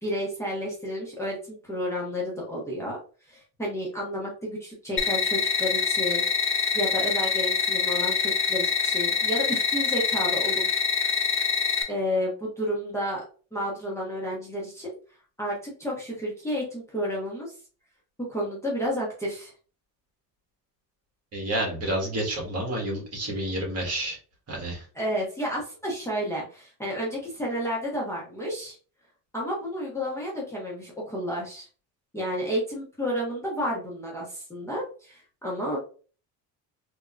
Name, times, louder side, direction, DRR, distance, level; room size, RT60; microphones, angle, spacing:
voice 1, 0.0-3.0 3.3-6.2 6.7-10.8 11.9-13.2 13.5-14.9 15.4-17.5 18.2-19.5 25.0-28.7 29.3-31.7 32.1-35.8, equal, 5° left, -5 dB, 1.1 m, -31 dB
sound 1, 5.0-11.8, left 6 dB, 30° left, 0.6 m, -25 dB
voice 2, 21.3-24.2 24.5-24.9, right 1 dB, 35° right, -1 dB, 1.7 m, -29 dB
3.5 x 2.9 x 2.4 m, 0.38 s
cardioid pair, 120°, 41 cm